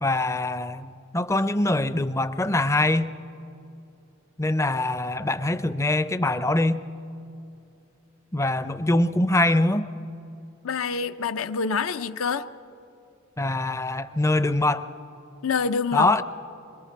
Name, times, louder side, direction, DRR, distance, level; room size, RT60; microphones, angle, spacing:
voice 1, 0.0-3.2 4.4-6.9 8.3-9.9 13.4-14.9 15.9-16.2, left 2 dB, 15° left, 0.5 m, -23 dB
voice 2, 10.6-12.5 15.4-16.2, left 5 dB, 75° left, 0.6 m, -26 dB
26.0 x 22.0 x 4.6 m
head